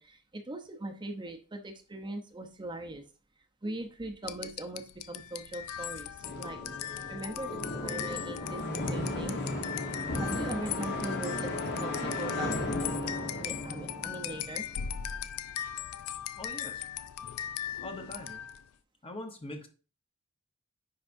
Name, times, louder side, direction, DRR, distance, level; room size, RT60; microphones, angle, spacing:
voice 1, 0.0-3.0 3.6-6.6 7.1-9.4 10.2-11.5 11.8-13.1 13.4-14.7, right 1 dB, 20° right, 0.7 m, -40 dB
sound 1, 4.2-18.7, left 10 dB, 80° left, 0.4 m, -39 dB
sound 2, 6.2-15.0, left 1 dB, 55° left, 1.3 m, -35 dB
voice 2, 16.4-16.9 17.8-18.4 19.0-19.7, left 1 dB, 25° left, 0.9 m, -42 dB
9.8 x 4.6 x 2.6 m
head